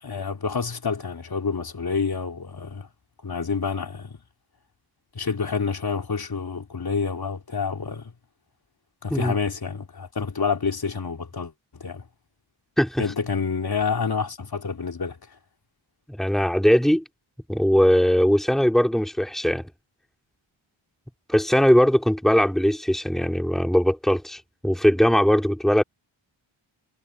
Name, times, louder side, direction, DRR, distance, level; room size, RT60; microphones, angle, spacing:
voice 1, 0.0-2.9 3.2-4.2 5.1-8.1 9.0-12.0 13.0-15.2, left 5 dB, 50° left, 3.4 m, -28 dB
voice 2, 16.1-17.0 17.5-19.7 21.3-25.8, equal, ahead, 2.9 m, -20 dB
wide cardioid pair, 85°, 48 cm